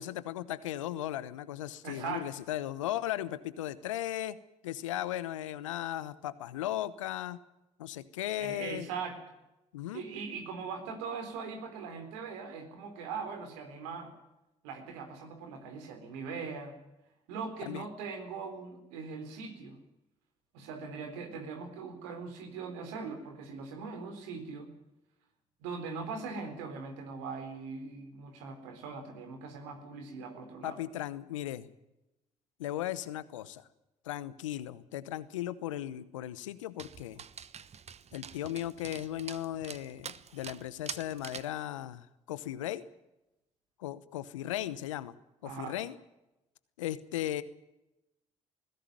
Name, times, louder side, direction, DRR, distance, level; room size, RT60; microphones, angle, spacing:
voice 1, 0.0-4.4 4.6-7.4 7.8-8.9 9.7-10.0 17.6-17.9 30.6-31.7 32.6-33.6 34.0-37.2 38.1-42.8 43.8-45.1 45.4-46.0 46.8-47.4, left 13 dB, 85° left, 17 dB, 0.9 m, -36 dB
voice 2, 1.8-2.3 8.4-9.2 9.9-14.1 14.6-16.8 17.3-19.8 20.5-24.7 25.6-30.8 45.4-45.8, right 5 dB, 80° right, 6 dB, 3.9 m, -40 dB
Dog, 36.8-41.6, right 7 dB, 40° right, 1.1 m, -46 dB
20.0 x 16.5 x 9.2 m, 0.93 s
hypercardioid pair, 50°, 16 cm